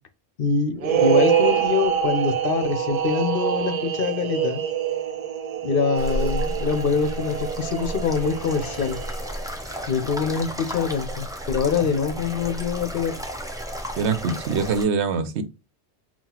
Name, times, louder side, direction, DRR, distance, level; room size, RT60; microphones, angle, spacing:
voice 1, 0.4-4.6 5.6-9.0 9.9-13.2, left 6 dB, 60° left, 0.8 m, -24 dB
sound 1, 0.8-9.4, right 8 dB, 60° right, 0.4 m, -25 dB
sound 2, 6.0-14.9, equal, 5° right, 0.5 m, -33 dB
voice 2, 14.0-15.4, right 5 dB, 80° right, 0.9 m, -23 dB
5.6 x 2.4 x 2.9 m
omnidirectional pair, 1.1 m